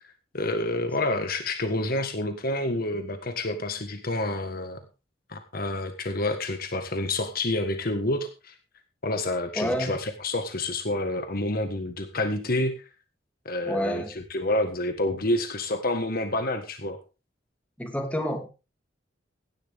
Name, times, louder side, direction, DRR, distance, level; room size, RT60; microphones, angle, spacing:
voice 1, 0.3-4.8 5.3-8.5 9.0-12.8 13.4-17.0, left 2 dB, 50° left, 7 dB, 1.6 m, -28 dB
voice 2, 9.6-9.9 13.7-14.1 17.8-18.5, equal, 10° left, 3 dB, 2.7 m, -28 dB
16.5 x 11.5 x 3.6 m, 0.32 s
head